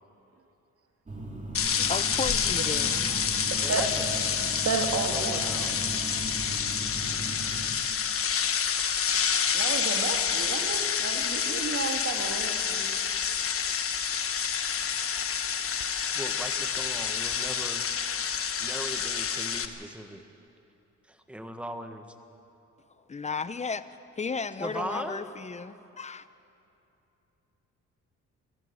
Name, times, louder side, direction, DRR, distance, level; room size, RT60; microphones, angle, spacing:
sound 1, 1.1-7.7, right 1 dB, 25° right, 3.2 m, -38 dB
sound 2, 1.5-19.7, left 7 dB, 45° left, 1.3 m, -28 dB
voice 1, 1.6-3.4 23.1-23.8 24.2-26.2, left 5 dB, 25° left, 14 dB, 0.7 m, -34 dB
voice 2, 3.6-4.0 5.1-5.8 16.1-17.9 18.6-20.2 21.1-22.1 24.6-25.3, equal, 5° right, 7 dB, 1.6 m, -39 dB
voice 3, 4.6-5.4 9.5-13.0, right 4 dB, 50° right, 4 dB, 2.3 m, -32 dB
21.0 x 15.0 x 9.0 m, 2.8 s
cardioid pair, 90°, 30 cm